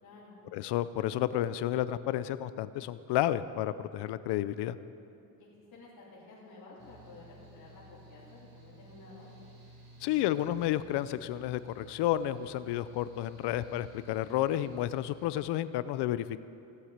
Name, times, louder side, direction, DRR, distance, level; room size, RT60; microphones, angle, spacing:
voice 1, 0.0-0.4 5.4-9.3, left 3 dB, 60° left, -9 dB, 3.5 m, -52 dB
voice 2, 0.5-4.8 10.0-16.4, left 13 dB, 85° left, 15 dB, 0.6 m, -31 dB
Mechanical fan, 6.8-15.3, equal, 45° right, 4.3 m, -54 dB
17.0 x 8.2 x 8.8 m, 2.9 s
cardioid pair, 140°, 40 cm